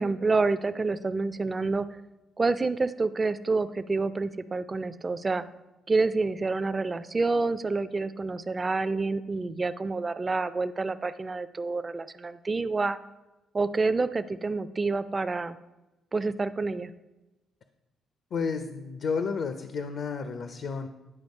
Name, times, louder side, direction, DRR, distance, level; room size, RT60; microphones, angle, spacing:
voice 1, 0.0-1.9 2.4-5.4 5.9-13.0 13.5-15.6 16.1-16.9, right 3 dB, 30° right, 13 dB, 0.4 m, -28 dB
voice 2, 18.3-20.9, left 5 dB, 60° left, 8 dB, 0.6 m, -31 dB
9.8 x 4.3 x 5.3 m, 1.1 s
cardioid pair, 90°, 0 cm